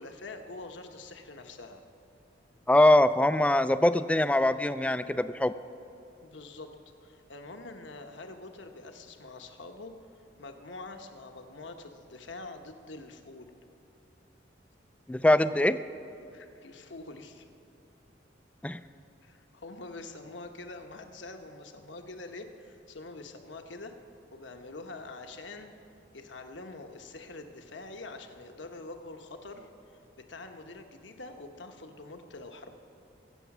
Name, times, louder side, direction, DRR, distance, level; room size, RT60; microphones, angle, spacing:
voice 1, 0.0-1.8 6.2-6.7 7.0-9.9 10.4-13.5 16.3-17.4 19.2-23.9 24.3-25.7 26.1-32.7, left 2 dB, 75° left, 5 dB, 1.1 m, -45 dB
voice 2, 2.7-5.5 15.1-15.8 18.6-18.8, left 1 dB, 5° left, 12 dB, 0.3 m, -23 dB
22.0 x 8.2 x 6.0 m, 2.9 s
head